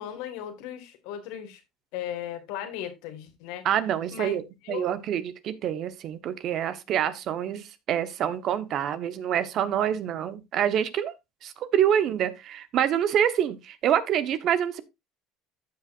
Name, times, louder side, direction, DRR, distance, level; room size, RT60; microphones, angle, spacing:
voice 1, 0.0-1.6 1.9-3.7 4.1-4.9, left 10 dB, 80° left, 1.9 m, -37 dB
voice 2, 3.6-11.1 11.4-14.8, right 9 dB, 55° right, 1.1 m, -26 dB
14.0 x 5.6 x 2.5 m
supercardioid pair, 100°, 0 cm